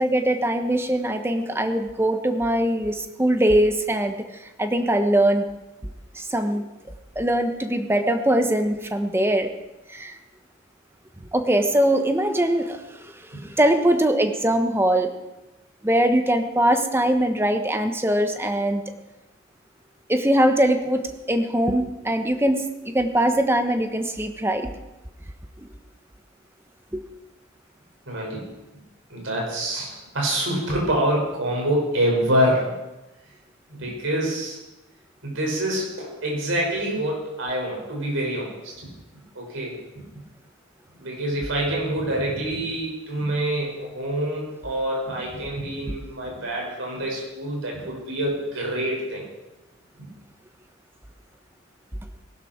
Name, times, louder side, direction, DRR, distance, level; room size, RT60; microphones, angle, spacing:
voice 1, 0.0-4.2 4.6-5.5 6.1-6.6 7.1-9.5 9.9-10.1 11.3-15.1 15.8-18.8 20.1-24.7 26.9-27.0, right 1 dB, 10° right, 6 dB, 1.1 m, -22 dB
voice 2, 28.1-28.5 29.1-32.7 33.7-34.6 35.2-38.7 39.3-39.8 41.0-49.2, right 1 dB, 70° right, -2 dB, 5.7 m, -26 dB
19.5 x 12.0 x 4.5 m, 1.0 s
head